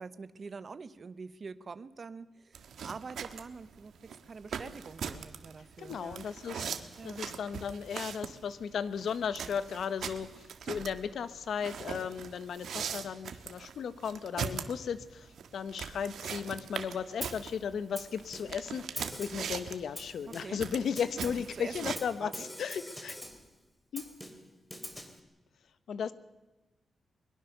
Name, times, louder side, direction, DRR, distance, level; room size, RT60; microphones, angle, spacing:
voice 1, 0.0-6.2 7.0-7.2 20.3-20.6 21.5-21.9 22.2-22.5, right 4 dB, 40° right, 13 dB, 0.9 m, -45 dB
sound 1, 2.5-22.0, right 7 dB, 80° right, 1.5 m, -41 dB
voice 2, 5.8-6.7 7.0-23.2 23.9-24.1 25.9-26.1, left 7 dB, 75° left, 13 dB, 1.2 m, -36 dB
Snare drum, 17.2-17.5 18.0-18.7 19.0-19.5 20.0-20.7 21.0-21.5 22.0-23.5 24.0-25.2, equal, 10° left, 2.7 m, -44 dB
22.5 x 21.5 x 6.8 m, 1.1 s
wide cardioid pair, 140°, 0 cm